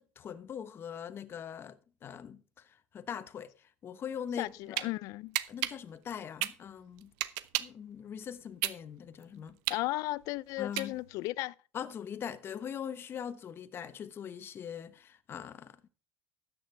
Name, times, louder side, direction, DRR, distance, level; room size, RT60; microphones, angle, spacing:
voice 1, 0.0-4.8 5.5-7.1 7.6-9.6 10.6-10.9 11.7-15.9, left 8 dB, 40° left, 1.0 m, -42 dB
sound 1, 4.3-4.9 5.3-7.8 8.2-11.3, right 16 dB, 80° right, 0.8 m, -34 dB
voice 2, 4.4-5.4 9.7-11.5, left 19 dB, 65° left, 0.5 m, -35 dB
13.0 x 8.7 x 3.4 m
supercardioid pair, 110°, 6 cm